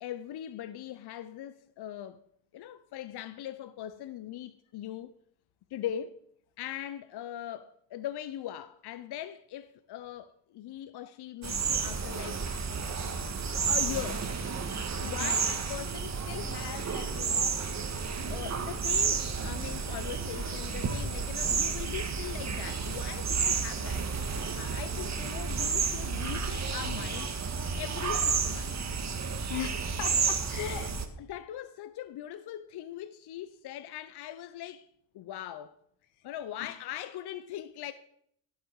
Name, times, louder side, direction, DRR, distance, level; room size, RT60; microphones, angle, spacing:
voice 1, 0.0-2.2 2.5-5.2 5.7-6.2 6.6-12.4 13.5-14.3 15.0-17.7 18.3-24.1 24.6-27.4 27.8-28.8 30.6-34.9 35.1-35.7 36.2-37.9, left 11 dB, 50° left, 0.8 m, -40 dB
sound 1, 11.4-31.0, right 5 dB, 35° right, 1.8 m, -31 dB
voice 2, 15.0-15.3 29.5-30.9, left 12 dB, 75° left, 1.9 m, -38 dB
16.5 x 8.1 x 4.8 m
supercardioid pair, 70°, 49 cm